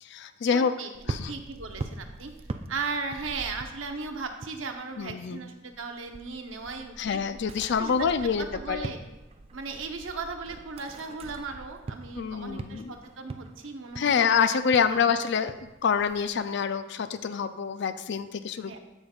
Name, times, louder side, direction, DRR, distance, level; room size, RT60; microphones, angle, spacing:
voice 1, 0.0-0.8 1.1-1.3 5.0-5.4 7.0-8.9 12.2-12.9 14.0-18.8, left 6 dB, 60° left, 12 dB, 0.4 m, -26 dB
voice 2, 0.5-2.3 2.7-7.2 7.8-9.0 9.5-14.3 14.9-15.1 18.7-18.8, right 4 dB, 75° right, 5 dB, 0.9 m, -37 dB
sound 1, 0.9-5.3 5.6-16.4, right 2 dB, 30° right, 0.4 m, -42 dB
14.0 x 5.2 x 2.4 m, 1.0 s
head